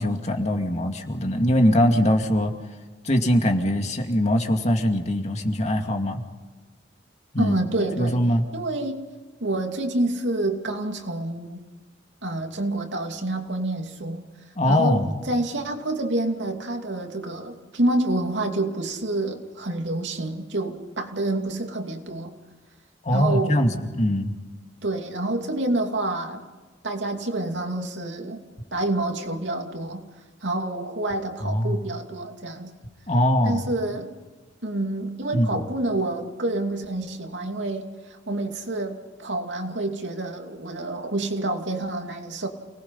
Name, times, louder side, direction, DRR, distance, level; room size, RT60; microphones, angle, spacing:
voice 1, 0.0-2.5 3.0-6.2 7.3-7.5 8.0-8.4 14.6-15.1 23.0-24.3 31.4-31.8 33.1-33.6 35.3-35.6, equal, 40° left, 3 dB, 2.3 m, -22 dB
voice 2, 7.4-8.2 8.5-9.0 9.4-11.6 12.2-14.3 14.7-22.3 23.1-23.6 24.8-26.4 26.8-28.4 28.7-30.1 30.4-32.7 33.4-34.1 34.6-42.5, right 2 dB, 80° right, 3 dB, 2.8 m, -28 dB
29.0 x 19.5 x 5.7 m, 1.3 s
head